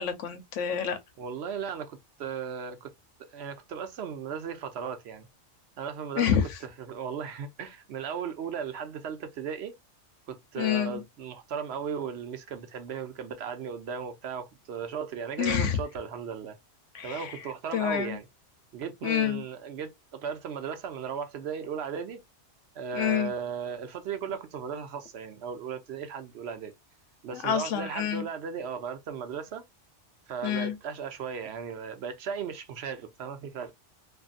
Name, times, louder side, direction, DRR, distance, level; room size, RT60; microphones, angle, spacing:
voice 1, 0.0-1.0 6.1-6.6 10.6-11.0 15.4-15.8 16.9-18.2 19.0-19.4 22.9-23.3 27.3-28.3 30.4-30.8, left 9 dB, 90° left, 1.1 m, -28 dB
voice 2, 1.2-2.9 3.2-5.3 5.8-6.3 6.9-9.8 10.3-16.6 17.0-18.2 18.7-22.2 22.7-26.7 27.2-29.6 30.3-33.8, right 6 dB, 65° right, 0.8 m, -36 dB
2.6 x 2.5 x 2.4 m
omnidirectional pair, 1.2 m